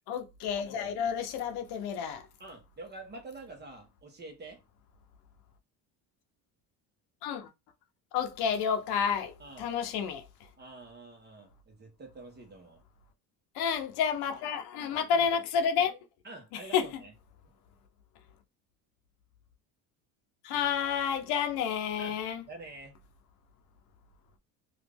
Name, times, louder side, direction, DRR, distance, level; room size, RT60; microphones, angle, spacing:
voice 1, 0.1-2.3 7.2-7.5 8.1-10.5 13.5-16.0 16.5-16.9 20.4-22.4, left 7 dB, 75° left, 0.8 m, -30 dB
voice 2, 2.4-4.6 9.4-9.7 10.6-12.8 15.1-15.3 16.2-17.1 22.0-22.2 22.5-22.9, right 2 dB, 25° right, 1.2 m, -47 dB
3.0 x 2.5 x 3.4 m
cardioid pair, 125°, 39 cm